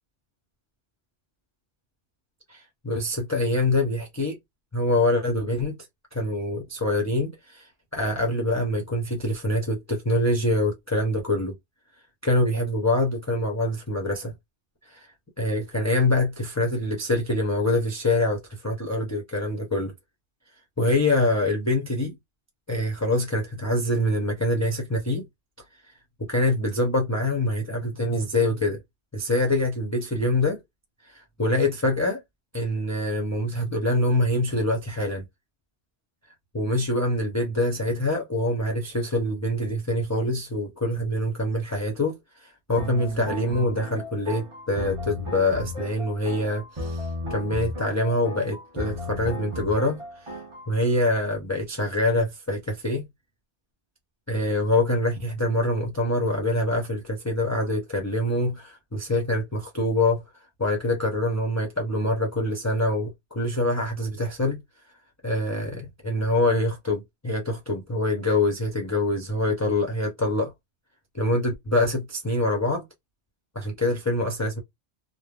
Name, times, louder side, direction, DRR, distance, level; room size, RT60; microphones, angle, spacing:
voice 1, 2.5-4.4 4.7-5.8 6.1-11.5 12.2-14.3 14.9-15.1 15.4-19.9 20.8-22.2 22.7-25.2 26.2-28.8 29.1-30.6 31.0-32.2 32.5-35.2 36.5-50.4 50.7-53.1 54.3-60.2 60.6-64.6 65.2-70.5 71.1-72.8 73.5-74.6, left 1 dB, 20° left, 0.6 m, -25 dB
sound 1, 42.8-50.7, equal, 30° right, 1.1 m, -34 dB
3.3 x 2.2 x 2.3 m
omnidirectional pair, 1.1 m